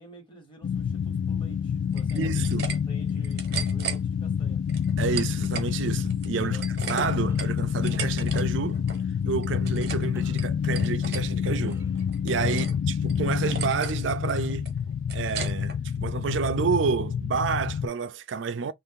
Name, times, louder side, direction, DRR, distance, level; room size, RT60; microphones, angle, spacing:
voice 1, 0.0-4.6 6.4-7.1 12.5-12.7, right 2 dB, 25° left, 1.3 m, -49 dB
sound 1, 0.6-17.9, left 7 dB, 75° left, 0.3 m, -28 dB
sound 2, 1.9-2.8 3.1-4.0 4.7-5.7 6.1-8.4 8.7-9.0 9.4-10.1 10.4-11.2 11.7-12.8 13.1-13.2 13.5-14.0 14.3-15.8, right 6 dB, 60° right, 0.9 m, -36 dB
voice 2, 2.1-2.7 5.0-8.8 9.3-11.8 12.2-14.7 15.1-18.7, right 5 dB, 80° right, 0.4 m, -29 dB
sound 3, 5.0-5.4 7.3-7.6 8.9-9.1 10.1-10.6 11.7-12.3 13.5-13.9, right 2 dB, 15° right, 0.4 m, -50 dB
2.6 x 2.5 x 3.6 m
head